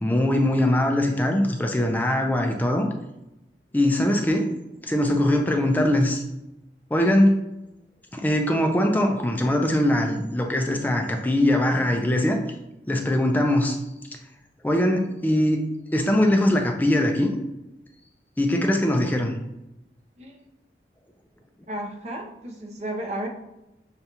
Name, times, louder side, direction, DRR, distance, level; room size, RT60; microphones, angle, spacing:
voice 1, 0.0-2.9 3.7-4.5 4.8-6.2 6.9-7.4 8.1-12.4 12.9-13.8 14.6-17.3 18.4-19.3, left 1 dB, 10° left, 3 dB, 0.4 m, -21 dB
voice 2, 21.7-23.3, right 1 dB, 35° right, 1 dB, 0.6 m, -33 dB
6.6 x 2.3 x 2.8 m, 0.91 s
head